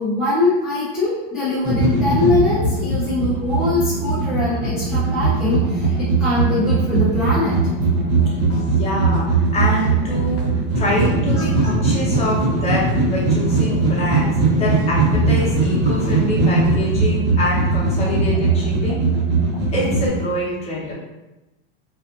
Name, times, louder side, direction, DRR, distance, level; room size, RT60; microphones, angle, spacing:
voice 1, 0.0-7.6 11.4-11.5, left 2 dB, ahead, -11 dB, 0.4 m, -22 dB
sound 1, 1.6-20.1, right 3 dB, 75° right, 0.9 m, -19 dB
sound 2, 7.9-10.7 11.0-13.6 14.1-14.2 14.8-14.9 15.3-16.9, right 1 dB, 50° left, 0.9 m, -38 dB
voice 2, 8.6-10.5 10.7-19.1 19.7-20.9, left 1 dB, 20° left, -7 dB, 0.8 m, -25 dB
2.5 x 2.4 x 2.4 m, 1.0 s
supercardioid pair, 150°, 29 cm